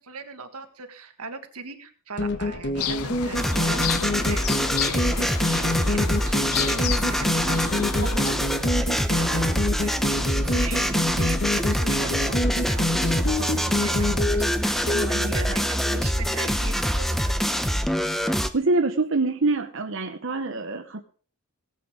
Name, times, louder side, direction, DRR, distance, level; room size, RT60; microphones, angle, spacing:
voice 1, 0.0-17.6, right 3 dB, 85° right, 7 dB, 1.9 m, -38 dB
sound 1, 2.2-15.1, left 1 dB, 50° left, 1.5 m, -27 dB
sound 2, 2.8-8.3, left 10 dB, 75° left, 0.6 m, -32 dB
sound 3, 3.3-18.5, equal, ahead, 0.7 m, -25 dB
voice 2, 14.9-15.5 18.5-21.0, right 3 dB, 60° right, 5 dB, 0.9 m, -26 dB
18.5 x 8.5 x 4.9 m, 0.43 s
head